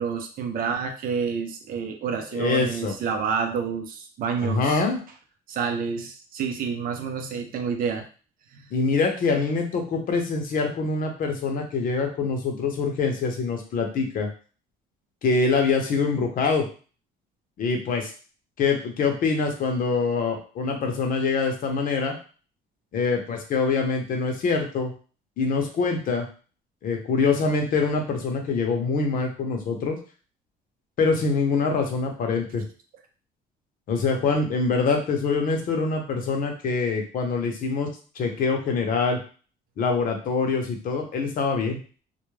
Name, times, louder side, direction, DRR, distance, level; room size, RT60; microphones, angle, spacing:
voice 1, 0.0-4.8 5.5-8.1 8.5-8.7, right 6 dB, 60° right, 5 dB, 0.5 m, -29 dB
voice 2, 2.3-2.9 4.4-5.0 8.7-14.3 15.2-16.7 17.6-18.1 18.6-22.2 22.9-24.9 25.4-26.3 26.8-30.0 31.0-32.6 33.9-37.9 38.2-39.2 39.8-41.8, left 4 dB, 55° left, 3 dB, 0.7 m, -24 dB
2.3 x 2.1 x 3.1 m, 0.38 s
cardioid pair, 110°, 17 cm